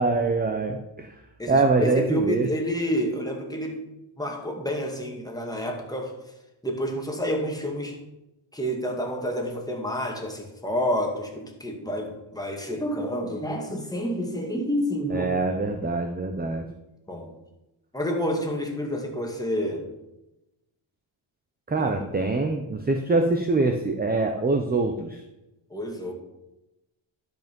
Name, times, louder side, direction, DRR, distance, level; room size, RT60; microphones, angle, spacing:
voice 1, 0.0-1.2 1.5-2.5 15.1-16.7 21.7-25.2, right 3 dB, 20° right, 5 dB, 0.8 m, -24 dB
voice 2, 1.4-3.8 4.2-6.1 6.6-8.0 8.5-15.3 17.1-17.3 17.9-19.9 21.7-22.1 25.7-26.1, equal, 5° left, 1 dB, 2.1 m, -29 dB
12.0 x 5.4 x 5.3 m, 0.93 s
cardioid pair, 105°, 49 cm